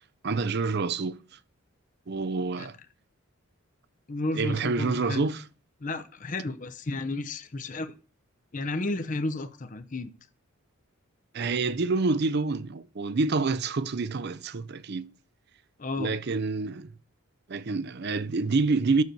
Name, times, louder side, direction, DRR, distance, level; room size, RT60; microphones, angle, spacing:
voice 1, 0.2-1.2 2.1-2.7 4.3-5.4 11.3-15.1 16.0-16.9 17.5-19.0, right 3 dB, 50° right, 0.5 m, -27 dB
voice 2, 4.1-5.3 5.8-7.9 8.5-10.1 15.8-16.1, left 2 dB, 35° left, 0.6 m, -32 dB
6.7 x 6.4 x 6.8 m
head